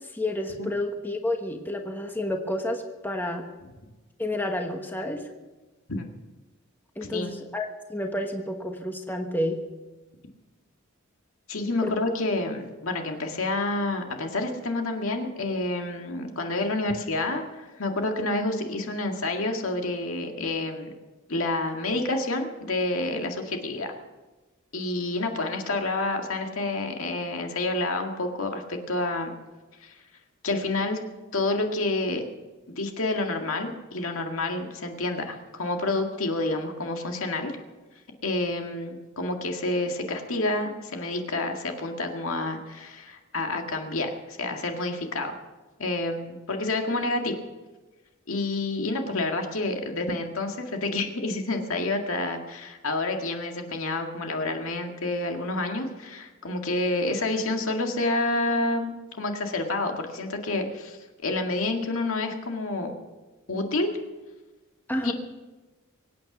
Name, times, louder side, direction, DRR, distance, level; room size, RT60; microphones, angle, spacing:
voice 1, 0.1-3.4 4.2-5.2 7.0-9.6 11.8-11.9 64.9-65.1, left 1 dB, 10° left, 3 dB, 1.2 m, -30 dB
voice 2, 7.0-7.3 11.5-20.9 21.3-23.9 24.7-29.3 29.8-29.9 30.4-31.0 31.3-32.2 32.8-37.5 38.2-45.4 45.8-47.4 48.3-62.9 63.5-63.9 65.0-65.1, left 2 dB, 75° left, 3 dB, 2.0 m, -29 dB
24.0 x 9.0 x 6.1 m, 1.2 s
head